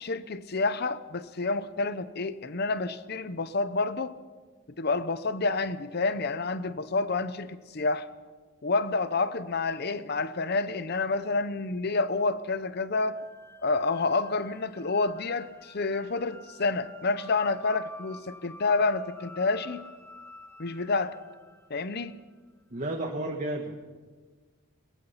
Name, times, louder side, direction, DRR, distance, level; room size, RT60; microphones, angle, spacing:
voice 1, 0.0-4.1 4.8-8.1 8.6-13.2 13.6-19.8 20.6-21.2 21.7-22.1, left 3 dB, 50° left, 14 dB, 0.8 m, -29 dB
sound 1, 13.1-22.3, left 1 dB, 10° left, 1.2 m, -50 dB
voice 2, 22.7-23.9, right 1 dB, 35° right, 1 dB, 1.7 m, -32 dB
22.5 x 21.5 x 5.8 m, 1.4 s
head